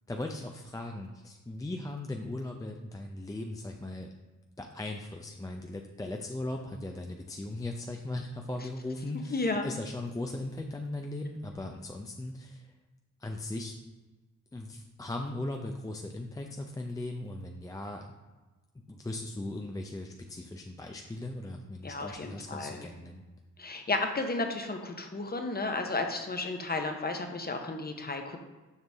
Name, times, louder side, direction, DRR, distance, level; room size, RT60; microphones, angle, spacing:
voice 1, 0.1-4.1 4.6-12.7 13.2-13.8 14.5-18.1 18.9-23.2, left 2 dB, 10° left, 2 dB, 0.5 m, -38 dB
voice 2, 9.3-9.7 21.8-22.8 23.6-28.4, left 3 dB, 30° left, 4 dB, 0.9 m, -33 dB
6.7 x 5.2 x 3.5 m, 1.2 s
cardioid pair, 75°, 32 cm